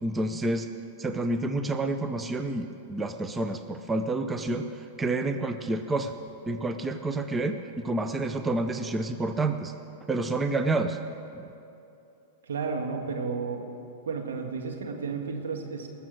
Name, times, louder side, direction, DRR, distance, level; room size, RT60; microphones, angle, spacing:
voice 1, 0.0-0.7 1.0-4.7 5.0-6.1 6.5-9.7 10.1-11.0 11.3-11.4, right 2 dB, 15° right, 8 dB, 0.6 m, -29 dB
voice 2, 12.5-13.6 14.0-15.9, right 5 dB, 80° right, 3 dB, 1.6 m, -32 dB
19.5 x 6.9 x 6.3 m, 2.8 s
hypercardioid pair, 105°, 0 cm